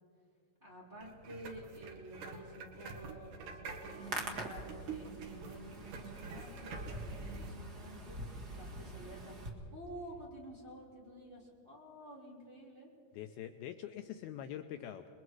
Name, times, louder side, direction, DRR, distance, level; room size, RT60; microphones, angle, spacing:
voice 1, 0.6-8.2 8.5-12.9, right 1 dB, 15° right, -5 dB, 3.6 m, -51 dB
sound 1, 1.0-7.5, right 4 dB, 60° right, 3.0 m, -48 dB
Hands, 3.8-9.5, right 2 dB, 40° right, 1.4 m, -44 dB
voice 2, 13.1-15.1, left 10 dB, 80° left, 7 dB, 2.3 m, -44 dB
29.0 x 21.5 x 4.8 m, 2.4 s
omnidirectional pair, 4.8 m